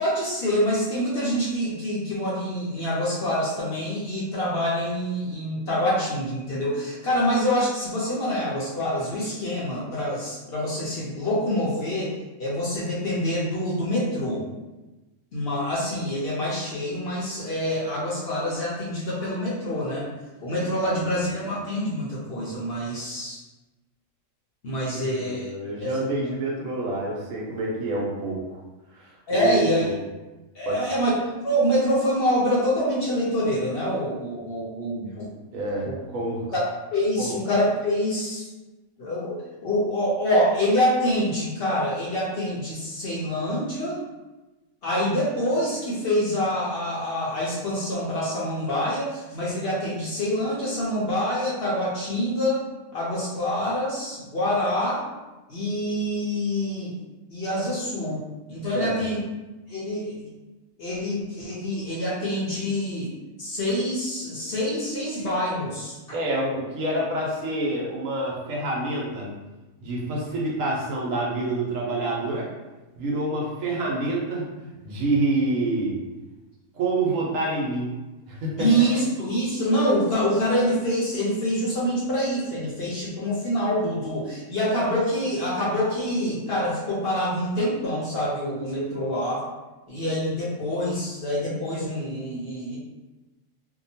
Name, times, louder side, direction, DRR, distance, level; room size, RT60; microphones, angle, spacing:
voice 1, 0.0-12.1 12.4-14.4 15.3-20.1 20.4-23.4 24.6-25.5 25.8-25.9 29.3-29.9 30.5-35.3 35.8-36.0 36.5-36.6 36.9-38.5 39.0-39.4 39.6-44.0 44.8-52.6 52.9-55.0 55.5-56.9 57.3-58.2 58.5-59.2 59.7-60.3 60.8-63.1 63.4-66.2 78.6-89.4 89.9-92.8, equal, 55° left, -6 dB, 0.7 m, -26 dB
voice 2, 24.8-28.6 29.0-30.0 30.7-30.8 35.5-36.4 37.2-37.3 58.7-59.0 66.1-69.3 69.8-72.5 73.0-74.5 74.8-76.0 76.7-77.9 78.3-78.7, right 2 dB, 75° right, -3 dB, 1.1 m, -27 dB
2.8 x 2.2 x 2.7 m, 1.1 s
omnidirectional pair, 1.4 m